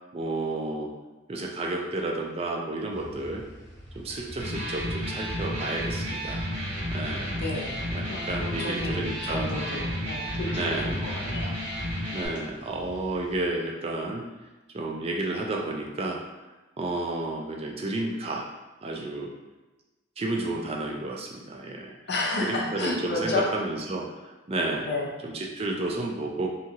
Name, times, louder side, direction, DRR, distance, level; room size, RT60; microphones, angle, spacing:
voice 1, 0.1-0.9 1.3-3.5 4.0-6.5 6.9-7.3 7.9-9.6 10.5-11.0 12.1-14.3 14.7-16.2 16.8-18.5 18.8-19.3 20.2-21.9 22.4-24.9 25.2-26.5, right 2 dB, 30° right, 0 dB, 0.3 m, -31 dB
sound 1, 2.9-13.4, equal, 5° right, 1.0 m, -46 dB
Electric guitar, 4.3-12.3, equal, 55° right, 1.3 m, -32 dB
voice 2, 7.3-11.9 22.1-23.5 24.8-25.1, left 2 dB, 60° left, -2 dB, 0.6 m, -32 dB
2.8 x 2.3 x 2.8 m, 1.1 s
head